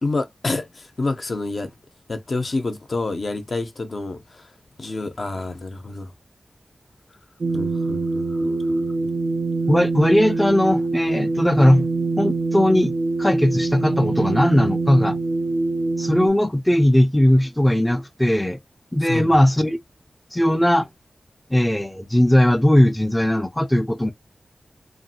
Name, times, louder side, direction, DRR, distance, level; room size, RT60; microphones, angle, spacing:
voice 1, 0.0-1.7 2.1-4.5 4.8-6.1 7.5-9.1 19.0-19.3, left 3 dB, 60° left, 0.6 m, -28 dB
sound 1, 7.4-16.3, right 3 dB, 70° right, 0.4 m, -24 dB
voice 2, 9.7-11.9 12.2-12.9 13.2-15.2 16.0-18.6 18.9-19.8 20.3-20.9 21.5-24.1, left 1 dB, 10° left, 0.4 m, -18 dB
2.9 x 2.4 x 2.7 m
wide cardioid pair, 70°, 0 cm